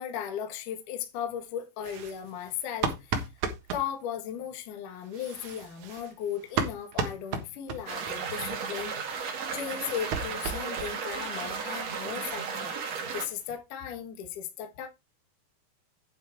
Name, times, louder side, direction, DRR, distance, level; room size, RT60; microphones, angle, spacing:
voice 1, 0.0-3.3 3.7-9.0 9.5-14.9, left 9 dB, 60° left, 2.4 m, -36 dB
sound 1, 1.8-3.9 5.0-8.1 8.4-8.5 8.8-8.9 9.2-11.2 11.5-11.6 11.9-12.0 12.3-12.4 12.7-13.5, right 5 dB, 65° right, 1.9 m, -35 dB
sound 2, 7.9-13.3, right 6 dB, 50° right, 2.3 m, -34 dB
9.7 x 5.7 x 4.5 m
omnidirectional pair, 5.3 m